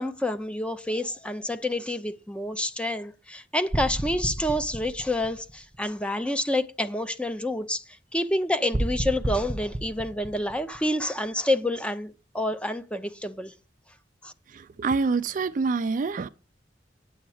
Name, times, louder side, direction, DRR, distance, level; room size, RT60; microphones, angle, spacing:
voice 1, 0.0-7.8 8.1-13.5 14.2-14.3, left 1 dB, 5° left, 0.6 m, -28 dB
sound 1, 3.7-6.0 8.7-11.3, right 1 dB, 25° right, 0.9 m, -32 dB
voice 2, 14.5-16.3, right 4 dB, 45° right, 0.4 m, -26 dB
8.7 x 7.8 x 4.9 m
head